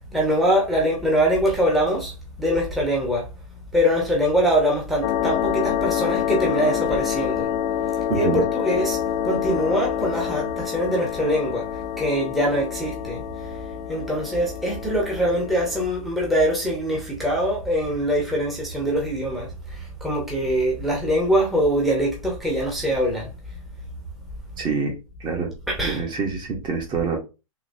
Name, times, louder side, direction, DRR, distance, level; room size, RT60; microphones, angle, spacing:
voice 1, 0.1-3.3 3.7-7.5 8.1-13.6 13.9-23.6 25.7-26.0, equal, ahead, 0.9 m, -23 dB
sound 1, 5.0-15.8, left 9 dB, 40° left, 0.4 m, -27 dB
voice 2, 8.1-8.4 24.6-24.9 25.2-25.5 25.8-27.2, right 5 dB, 25° right, 1.0 m, -26 dB
3.8 x 2.8 x 2.7 m
hypercardioid pair, 135°, 18 cm